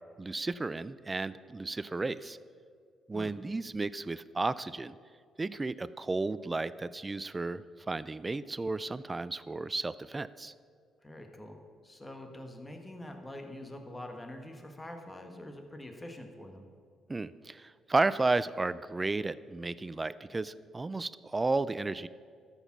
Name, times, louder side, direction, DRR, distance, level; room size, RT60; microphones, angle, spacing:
voice 1, 0.2-2.4 3.1-5.0 5.4-10.5 17.1-22.1, right 3 dB, 20° right, 16 dB, 0.3 m, -33 dB
voice 2, 11.0-16.6, left 1 dB, 15° left, 4 dB, 1.5 m, -45 dB
13.0 x 7.1 x 6.0 m, 2.1 s
cardioid pair, 90°, 0 cm